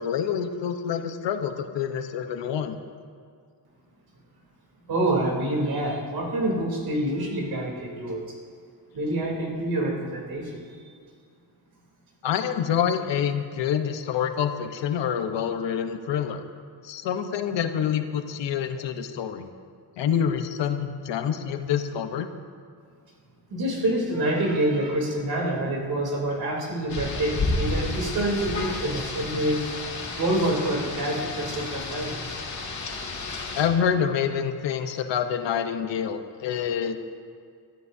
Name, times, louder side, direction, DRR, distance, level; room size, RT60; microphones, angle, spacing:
voice 1, 0.0-2.7 12.2-16.4 16.8-19.5 20.0-22.3 33.6-37.0, left 8 dB, 85° left, 7 dB, 1.1 m, -27 dB
voice 2, 4.9-8.3 8.9-10.6 10.9-11.0 23.5-29.7 30.2-32.3, right 1 dB, 60° right, -1 dB, 3.4 m, -27 dB
Rain, 26.9-33.7, left 3 dB, 40° left, 2.5 m, -31 dB
22.5 x 14.0 x 2.8 m, 2.2 s
cardioid pair, 140°, 42 cm